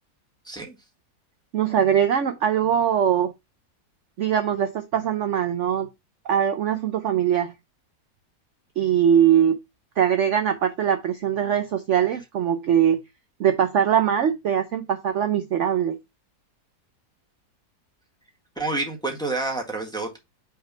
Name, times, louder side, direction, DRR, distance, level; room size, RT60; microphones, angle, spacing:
voice 1, 0.4-0.8 18.5-20.2, right 2 dB, 5° left, 1.4 m, -28 dB
voice 2, 1.5-3.3 4.2-5.9 6.2-7.5 8.8-9.5 10.0-13.0 13.4-16.0, right 9 dB, 60° right, 0.9 m, -21 dB
5.8 x 3.3 x 5.4 m
omnidirectional pair, 1.7 m